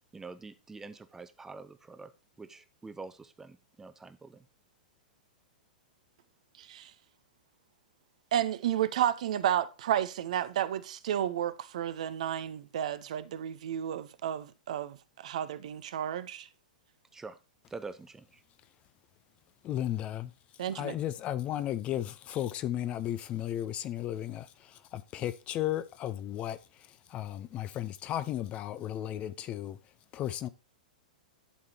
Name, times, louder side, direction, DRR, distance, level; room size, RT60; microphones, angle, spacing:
voice 1, 0.1-2.1 2.4-4.4 17.1-17.4 17.7-18.4, right 4 dB, 10° right, 0.7 m, -45 dB
voice 2, 6.6-6.9 8.3-15.0 15.2-16.5 20.6-21.0, right 10 dB, 55° right, 0.6 m, -32 dB
voice 3, 19.6-20.3 20.8-24.5 24.9-26.6 27.1-29.8 30.1-30.5, left 12 dB, 25° left, 0.5 m, -34 dB
11.0 x 3.8 x 4.3 m
figure-of-eight pair, 105°, 5 cm